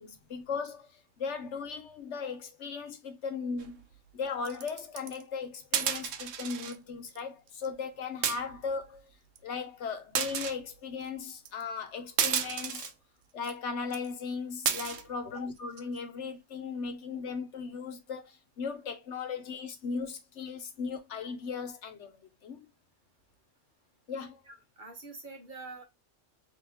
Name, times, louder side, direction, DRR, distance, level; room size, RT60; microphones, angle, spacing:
voice 1, 0.3-0.9 1.2-3.8 4.1-9.1 9.4-12.9 13.3-22.7 24.1-24.4, left 5 dB, 65° left, 1.1 m, -37 dB
sound 1, 3.6-3.8 4.4-5.2 5.7-6.8 7.1-7.2 7.5-7.7 8.2-8.7 9.4-9.5 10.1-10.6 11.5-11.6 12.2-12.9 13.4-13.5 13.9-14.1 14.7-15.0 15.6-16.0, right 8 dB, 80° right, 1.0 m, -32 dB
voice 2, 24.5-25.8, right 3 dB, 45° right, 1.1 m, -45 dB
3.7 x 3.0 x 2.9 m
omnidirectional pair, 1.3 m